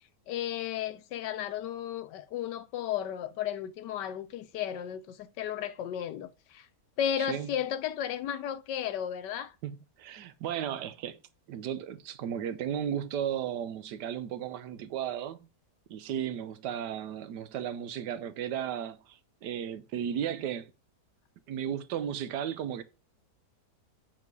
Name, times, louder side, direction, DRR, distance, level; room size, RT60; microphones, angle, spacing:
voice 1, 0.3-6.7 7.0-9.5, left 10 dB, 90° left, 1.4 m, -34 dB
voice 2, 7.2-7.5 9.6-11.2 11.5-15.4 15.9-20.7 21.5-22.8, right 9 dB, 80° right, 1.3 m, -35 dB
7.4 x 3.9 x 4.6 m
omnidirectional pair, 1.8 m